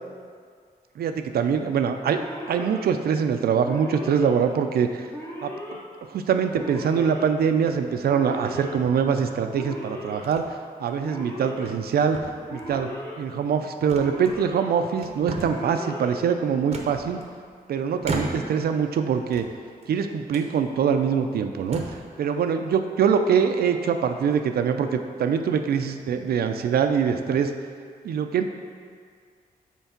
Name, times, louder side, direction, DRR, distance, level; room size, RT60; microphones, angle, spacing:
voice 1, 1.0-2.2 2.5-5.1 5.4-5.8 6.1-10.4 10.8-12.2 12.5-12.9 13.2-17.2 17.7-19.5 19.9-21.8 22.2-27.5 28.0-28.5, right 7 dB, 85° right, 7 dB, 0.5 m, -23 dB
Alarm, 2.2-2.8 3.6-4.3 5.1-5.8 6.6-7.2 8.1-8.7 9.5-10.2 11.0-11.7 12.5-13.1 14.0-14.6 15.4-16.1, left 1 dB, 20° left, 1.2 m, -37 dB
sound 1, 7.5-8.0 8.8-9.5 10.2-10.5 10.9-11.0 11.5-11.9 12.1-12.8 13.9-14.6 15.0-15.7 16.7-17.5 18.0-18.7 19.2-19.9 20.3-20.5 21.1-21.2 21.6-22.1, right 3 dB, 45° right, 0.7 m, -35 dB
5.7 x 4.6 x 5.8 m, 2.1 s
wide cardioid pair, 120°, 16 cm